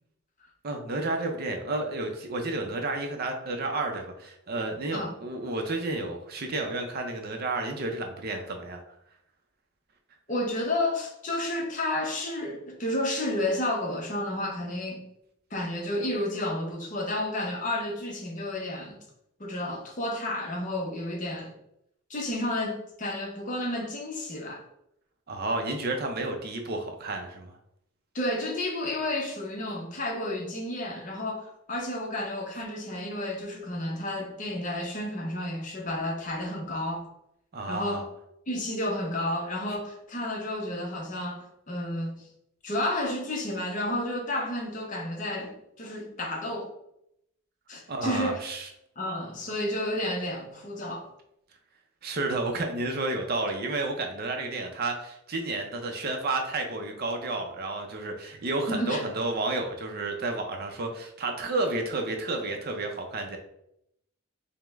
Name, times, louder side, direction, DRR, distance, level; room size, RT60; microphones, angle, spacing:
voice 1, 0.6-8.8 25.3-27.6 37.5-38.0 47.9-48.7 52.0-63.4, right 2 dB, 45° right, 0.5 m, -31 dB
voice 2, 10.3-15.0 15.5-19.0 19.4-21.5 22.1-24.6 28.1-37.1 37.7-38.0 38.5-42.2 42.6-46.7 47.7-48.4 49.0-51.1 58.7-59.0, left 1 dB, 35° left, 0.7 m, -31 dB
5.0 x 2.1 x 3.4 m
head